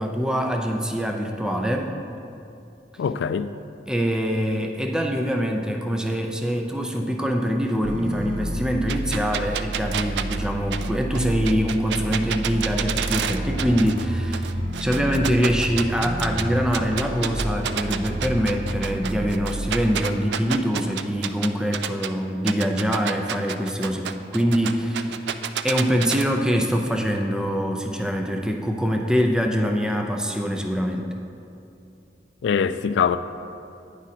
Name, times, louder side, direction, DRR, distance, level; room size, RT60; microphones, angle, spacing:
voice 1, 0.0-1.9 3.9-14.5 14.8-25.3 25.6-31.1, equal, 5° right, 0.4 m, -24 dB
voice 2, 3.0-3.5 32.4-33.2, left 7 dB, 80° left, 0.3 m, -22 dB
sound 1, 7.8-19.7, right 1 dB, 50° right, 0.8 m, -30 dB
sound 2, 8.9-14.1 14.3-16.4 16.7-22.1 22.5-26.2, right 9 dB, 70° right, 0.3 m, -29 dB
9.5 x 4.9 x 4.2 m
head